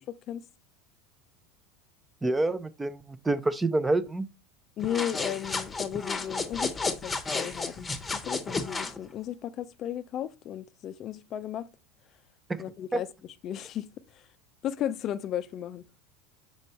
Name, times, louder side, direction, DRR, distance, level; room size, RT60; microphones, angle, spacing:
voice 1, 2.2-4.3 12.9-13.0, right 2 dB, 10° right, 0.5 m, -27 dB
voice 2, 4.8-11.7 12.6-14.3 14.6-15.8, left 10 dB, 45° left, 0.4 m, -35 dB
sound 1, 4.8-9.0, left 3 dB, 15° left, 0.9 m, -32 dB
5.3 x 4.5 x 4.2 m
supercardioid pair, 110°, 0 cm